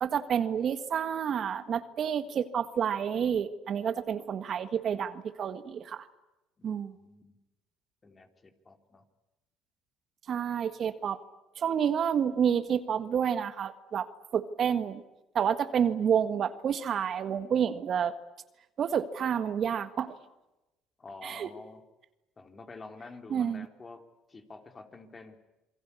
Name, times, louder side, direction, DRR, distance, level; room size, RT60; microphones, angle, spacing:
voice 1, 0.0-6.1 6.6-6.9 10.3-11.2 11.6-14.1 14.3-15.0 15.4-18.1 18.8-20.2 21.2-21.5 23.3-23.7, right 8 dB, 50° right, 11 dB, 1.6 m, -29 dB
voice 2, 6.6-7.4 8.0-9.0 21.0-21.8 22.4-24.0 24.3-25.4, left 3 dB, 30° left, 6 dB, 3.6 m, -48 dB
27.5 x 21.5 x 8.5 m, 1.0 s
supercardioid pair, 80°, 0 cm